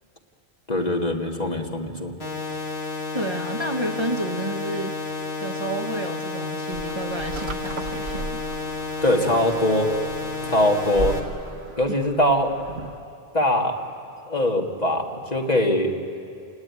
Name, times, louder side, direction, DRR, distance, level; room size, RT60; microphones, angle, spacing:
voice 1, 0.7-2.1 9.0-9.9 10.4-11.2 11.8-12.5 13.3-13.8 14.3-15.9, left 1 dB, 40° left, 1 dB, 2.1 m, -22 dB
sound 1, 2.2-11.2, left 3 dB, 70° left, 2.6 m, -31 dB
voice 2, 3.1-8.4, right 1 dB, 25° right, 2 dB, 1.2 m, -30 dB
sound 2, 6.7-13.1, right 3 dB, 75° right, 1.5 m, -36 dB
29.5 x 19.0 x 9.6 m, 2.5 s
omnidirectional pair, 1.1 m